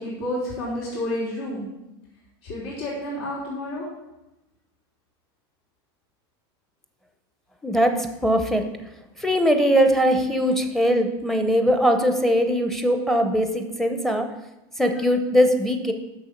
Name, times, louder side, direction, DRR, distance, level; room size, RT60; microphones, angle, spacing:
voice 1, 0.0-1.6 2.4-3.9 15.0-15.1, left 1 dB, 80° left, -6 dB, 3.2 m, -30 dB
voice 2, 7.6-8.6 9.2-14.3 14.8-15.9, equal, 5° left, 5 dB, 0.6 m, -21 dB
6.9 x 6.1 x 5.0 m, 0.96 s
supercardioid pair, 150°, 13 cm